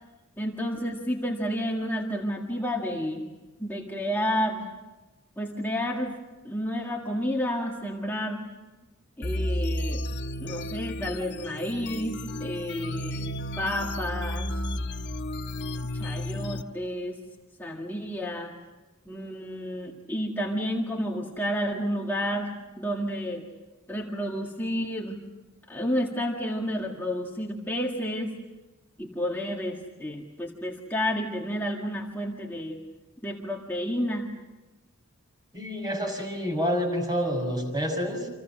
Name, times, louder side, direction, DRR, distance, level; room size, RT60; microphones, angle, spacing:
voice 1, 0.4-3.2 3.6-4.7 5.4-6.2 6.4-8.4 9.2-10.0 10.4-14.5 15.9-17.2 17.6-18.5 19.1-23.5 23.9-25.2 25.7-28.4 29.0-32.8 33.2-34.3, equal, 10° left, -1 dB, 1.9 m, -30 dB
sound 1, 9.2-16.6, left 1 dB, 55° left, 1.2 m, -32 dB
voice 2, 35.5-38.3, equal, 20° right, 3 dB, 6.2 m, -28 dB
30.0 x 27.0 x 6.3 m, 1.2 s
head